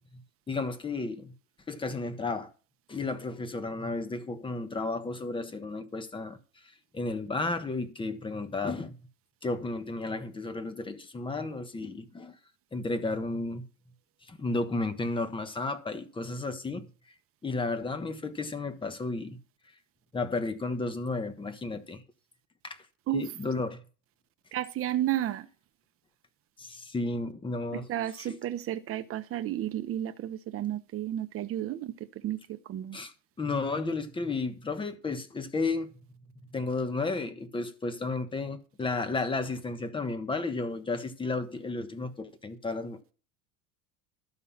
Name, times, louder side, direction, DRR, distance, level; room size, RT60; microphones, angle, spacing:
voice 1, 0.5-1.3 1.7-2.5 2.9-6.4 6.9-8.9 9.4-12.3 12.7-13.6 14.3-16.8 17.4-19.4 20.1-22.0 22.6-22.8 23.1-23.8 26.6-27.9 28.3-28.4 32.9-35.9 36.5-43.1, left 3 dB, 15° left, 1.3 m, -33 dB
voice 2, 24.5-25.5 27.7-33.0, right 12 dB, 35° right, 1.1 m, -32 dB
12.0 x 5.6 x 7.4 m
supercardioid pair, 135°, 39 cm